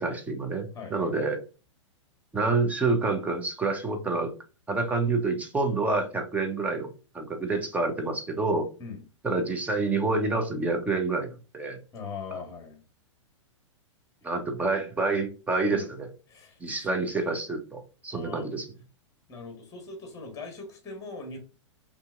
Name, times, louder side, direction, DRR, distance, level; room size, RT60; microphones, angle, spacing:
voice 1, 0.0-1.4 2.3-4.3 4.7-8.7 9.2-11.8 14.2-16.1 16.6-18.7, right 3 dB, 10° right, 4 dB, 0.8 m, -28 dB
voice 2, 0.7-1.1 4.7-4.8 8.8-9.0 11.9-12.8 14.2-14.3 15.7-15.9 16.3-16.9 18.1-18.5 19.3-21.4, left 4 dB, 20° left, 4 dB, 1.4 m, -41 dB
5.4 x 2.7 x 2.5 m, 0.34 s
figure-of-eight pair, 105°, 16 cm